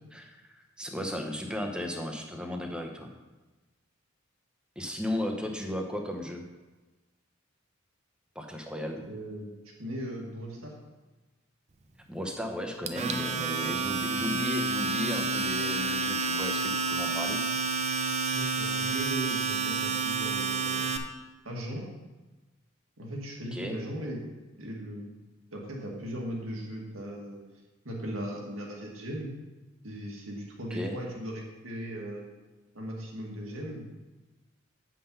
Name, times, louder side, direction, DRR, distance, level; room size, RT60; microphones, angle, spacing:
voice 1, 0.1-3.1 4.8-6.4 8.3-9.0 12.1-17.4 23.5-23.8 30.7-31.0, left 1 dB, 5° right, 3 dB, 0.9 m, -35 dB
voice 2, 9.0-9.5 9.8-10.7 18.3-20.9 21.5-21.8 23.0-24.2 24.6-25.1 25.5-27.4 27.8-29.3 29.8-32.2 32.7-33.9, equal, 85° right, -1 dB, 2.0 m, -38 dB
Domestic sounds home sounds, 12.9-21.0, right 4 dB, 35° right, 0.6 m, -29 dB
8.4 x 5.8 x 5.5 m, 1.2 s
head